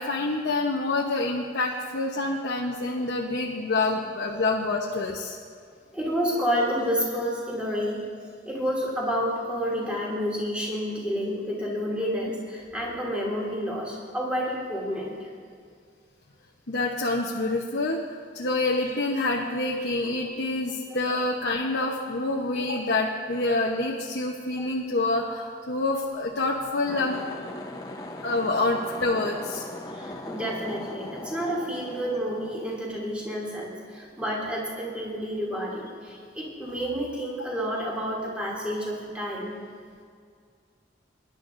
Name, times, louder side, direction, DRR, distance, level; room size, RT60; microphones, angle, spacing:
voice 1, 0.0-5.4 16.7-18.0 18.3-27.2 28.2-29.6, left 2 dB, 75° left, -2 dB, 1.0 m, -27 dB
voice 2, 5.9-8.1 8.4-15.3 24.6-24.7 29.9-39.6, equal, 5° right, -4 dB, 2.7 m, -30 dB
sound 1, 26.8-33.3, left 1 dB, 20° left, 0.9 m, -39 dB
23.0 x 11.0 x 2.6 m, 2.2 s
head